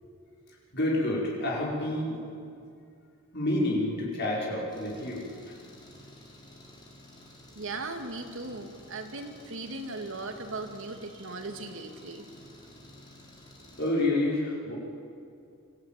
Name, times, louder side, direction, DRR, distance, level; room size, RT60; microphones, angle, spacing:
voice 1, 0.5-2.2 3.3-5.5 13.8-14.7, left 1 dB, 50° left, -4 dB, 5.3 m, -29 dB
Engine, 4.7-13.9, left 1 dB, 20° left, 4.1 m, -52 dB
voice 2, 7.6-12.3, right 2 dB, 60° right, 4 dB, 2.2 m, -38 dB
25.5 x 14.5 x 9.2 m, 2.5 s
head